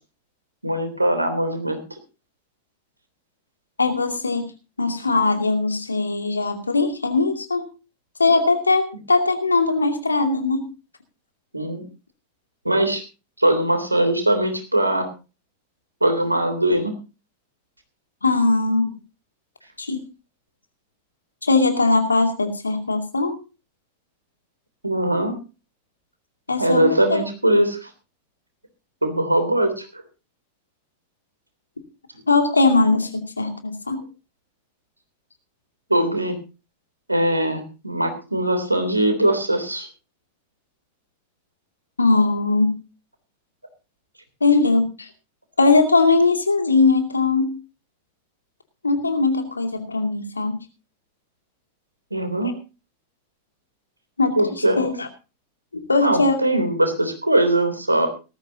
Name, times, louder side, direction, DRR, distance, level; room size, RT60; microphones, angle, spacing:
voice 1, 0.6-1.8 11.5-11.8 12.6-13.0 13.4-15.1 16.0-16.9 24.8-25.3 26.6-27.9 29.0-30.0 35.9-36.3 37.1-39.9 52.1-52.5 54.4-54.8 56.0-58.1, right 1 dB, 85° right, 7 dB, 3.2 m, -21 dB
voice 2, 3.8-4.5 4.8-7.7 8.2-10.7 18.2-18.9 19.8-20.0 21.4-23.4 26.5-27.2 32.3-34.0 42.0-42.7 44.4-45.1 45.6-47.6 48.8-50.6 54.2-54.4 54.8-55.1 55.7-56.4, left 3 dB, 80° left, 5 dB, 2.5 m, -20 dB
18.5 x 14.0 x 2.8 m, 0.32 s
figure-of-eight pair, 90°, 0 cm